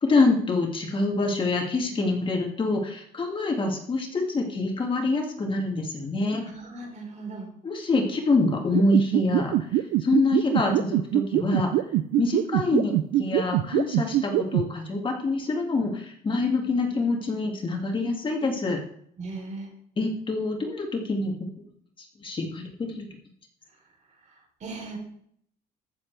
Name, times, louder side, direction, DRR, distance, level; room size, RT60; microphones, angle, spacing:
voice 1, 0.0-6.5 7.6-11.7 12.2-18.8 20.0-21.3 22.2-23.1, left 3 dB, 30° left, 1 dB, 2.2 m, -26 dB
voice 2, 6.5-7.5 19.2-19.7 24.6-25.0, right 3 dB, 45° right, 2 dB, 3.5 m, -37 dB
sound 1, 8.7-14.6, right 15 dB, 85° right, 0.5 m, -22 dB
15.0 x 7.2 x 3.4 m, 0.66 s
cardioid pair, 110°, 17 cm